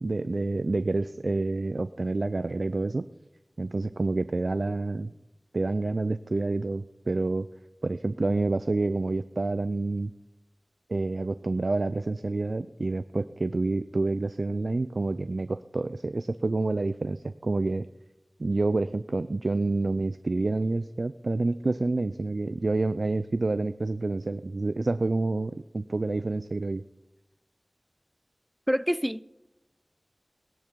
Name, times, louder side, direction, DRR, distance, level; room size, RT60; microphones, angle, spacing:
voice 1, 0.0-3.1 3.6-5.1 5.5-7.5 7.8-10.1 10.9-17.9 18.4-26.8, right 2 dB, 75° right, 0.4 m, -28 dB
voice 2, 28.7-29.3, equal, 5° right, 0.4 m, -26 dB
19.0 x 10.5 x 4.6 m
wide cardioid pair, 55°, 0 cm